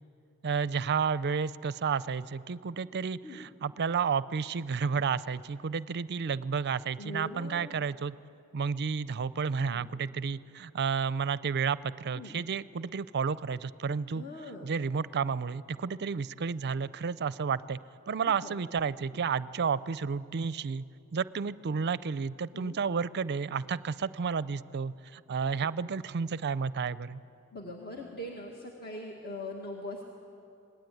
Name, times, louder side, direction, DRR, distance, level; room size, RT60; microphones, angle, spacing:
voice 1, 0.4-8.1 8.5-14.2 14.6-17.8 18.1-20.8 21.1-27.2, right 6 dB, 50° right, 17 dB, 0.5 m, -31 dB
voice 2, 7.0-7.7 9.7-9.9 12.1-12.4 14.1-14.7 18.1-18.6 22.5-22.8 25.6-25.7 27.5-30.0, left 1 dB, 45° left, 0 dB, 1.9 m, -42 dB
26.5 x 19.5 x 9.3 m, 2.8 s
head